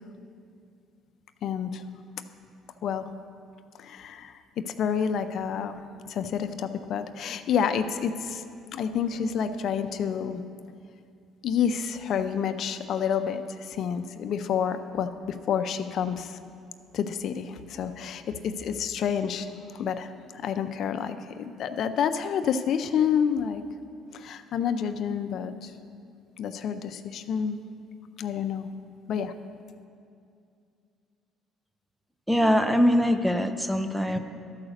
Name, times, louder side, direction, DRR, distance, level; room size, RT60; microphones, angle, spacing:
voice 1, 1.4-1.8 2.8-3.0 3.8-4.3 4.6-5.8 6.1-8.4 8.7-10.4 11.4-16.4 16.9-23.6 24.1-25.7 26.4-27.6 28.2-28.7 29.1-29.3, left 7 dB, 60° left, 9 dB, 0.5 m, -29 dB
voice 2, 32.3-34.2, equal, ahead, 8 dB, 0.5 m, -22 dB
12.5 x 4.9 x 6.5 m, 2.4 s
cardioid pair, 105°, 0 cm